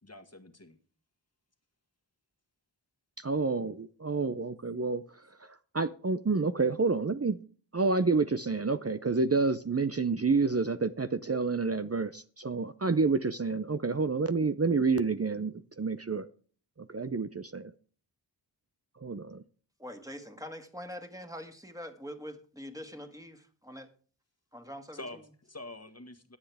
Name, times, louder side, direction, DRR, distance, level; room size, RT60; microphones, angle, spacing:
voice 1, 0.0-0.8 24.9-26.4, left 2 dB, 35° left, 1.6 m, -46 dB
voice 2, 3.2-5.0 5.7-7.4 7.7-16.3 16.8-17.7 19.0-19.4, right 4 dB, 35° right, 0.6 m, -29 dB
voice 3, 19.8-23.9 24.5-25.0, equal, 10° right, 2.0 m, -44 dB
22.0 x 7.9 x 3.5 m
wide cardioid pair, 45°, 44 cm